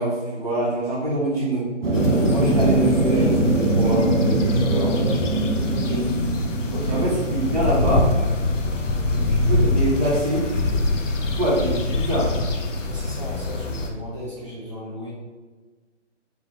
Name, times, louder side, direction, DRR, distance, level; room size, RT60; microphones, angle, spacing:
voice 1, 0.0-1.7 2.3-4.9 6.9-8.1 9.1-10.5 11.1-12.4, right 1 dB, 30° right, -9 dB, 1.3 m, -25 dB
sound 1, 1.8-9.5, right 2 dB, 75° right, 1.3 m, -22 dB
sound 2, 1.9-13.9, left 2 dB, 85° left, 0.7 m, -25 dB
voice 2, 5.6-6.1 6.7-7.1 12.8-15.1, equal, 25° left, -10 dB, 0.7 m, -35 dB
4.6 x 2.3 x 3.9 m, 1.3 s
hypercardioid pair, 175°, 37 cm